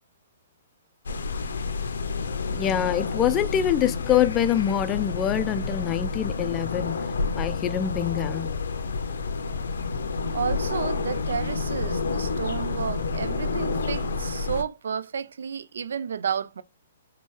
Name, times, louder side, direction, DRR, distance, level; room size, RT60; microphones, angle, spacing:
sound 1, 1.0-14.6, left 4 dB, 80° left, 0.5 m, -29 dB
voice 1, 2.5-7.0 7.3-8.5, left 10 dB, 25° left, 0.3 m, -25 dB
voice 2, 10.3-16.6, right 7 dB, 80° right, 0.3 m, -31 dB
4.3 x 2.2 x 3.1 m
hypercardioid pair, 130°, 0 cm